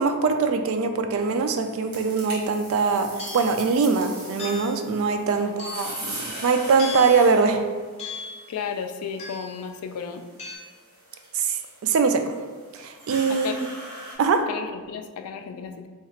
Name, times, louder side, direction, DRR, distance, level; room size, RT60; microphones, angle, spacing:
voice 1, 0.0-7.6 11.3-11.6 11.8-12.2 12.8-13.5 14.2-14.4, right 4 dB, 65° right, 7 dB, 0.3 m, -22 dB
sound 1, 1.2-14.1, right 1 dB, 85° right, 1.3 m, -41 dB
sound 2, 3.2-3.6 4.4-4.8 5.6-6.1 6.8-7.2 8.0-8.4 9.2-9.6 10.4-10.6, left 4 dB, 30° left, 0.7 m, -36 dB
voice 2, 8.5-10.2 13.3-13.6 14.5-15.9, left 6 dB, 80° left, 7 dB, 0.3 m, -34 dB
2.9 x 2.4 x 4.3 m, 1.4 s
head